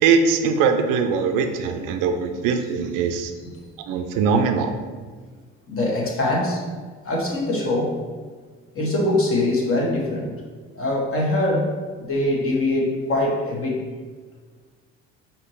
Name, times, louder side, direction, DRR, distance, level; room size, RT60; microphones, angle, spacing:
voice 1, 0.0-3.3 3.9-4.8, right 5 dB, 60° right, 6 dB, 0.5 m, -21 dB
voice 2, 5.7-6.6 7.0-8.0 8.7-10.3 10.7-11.8 12.1-13.8, left 1 dB, 40° left, -3 dB, 1.4 m, -23 dB
4.8 x 3.0 x 3.2 m, 1.5 s
hypercardioid pair, 60°, 36 cm